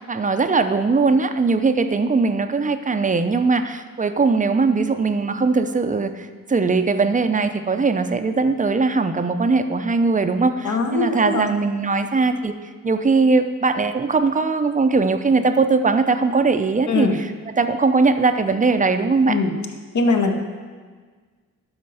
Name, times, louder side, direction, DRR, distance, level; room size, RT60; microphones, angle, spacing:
voice 1, 0.0-12.6 12.8-17.1 17.5-19.4, right 4 dB, 25° right, 9 dB, 0.5 m, -20 dB
voice 2, 10.6-11.5 16.9-17.2 19.3-19.6 19.9-20.4, left 3 dB, 60° left, 4 dB, 1.1 m, -21 dB
11.5 x 4.3 x 5.6 m, 1.5 s
cardioid pair, 90°, 34 cm